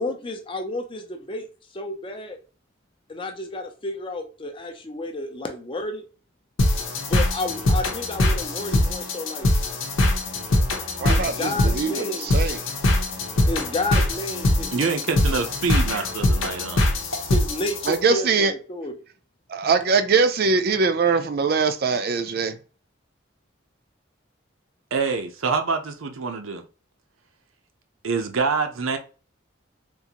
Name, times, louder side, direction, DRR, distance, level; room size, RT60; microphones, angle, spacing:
voice 1, 0.0-1.4 1.7-2.4 3.1-6.0 7.1-9.5 11.0-12.3 13.5-15.2 17.3-18.9 19.6-19.7, left 1 dB, 25° left, 0.5 m, -31 dB
sound 1, 6.6-18.0, left 1 dB, 80° left, 0.8 m, -23 dB
voice 2, 11.0-12.6 17.9-18.5 19.5-22.6, right 4 dB, 50° right, 0.4 m, -22 dB
voice 3, 14.7-16.8 24.9-26.6 28.0-29.0, right 4 dB, 90° right, 0.6 m, -26 dB
3.7 x 2.5 x 2.8 m
head